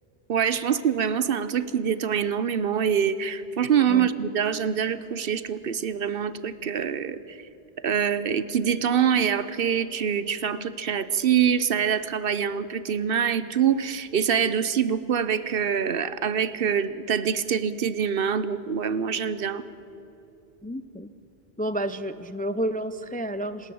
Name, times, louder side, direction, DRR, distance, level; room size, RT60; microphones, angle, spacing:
voice 1, 0.3-7.4 7.8-19.6, right 8 dB, 65° right, 14 dB, 1.0 m, -25 dB
voice 2, 20.6-21.1 21.6-23.7, right 1 dB, 10° left, 13 dB, 0.4 m, -30 dB
27.0 x 13.0 x 8.6 m, 2.9 s
omnidirectional pair, 1.1 m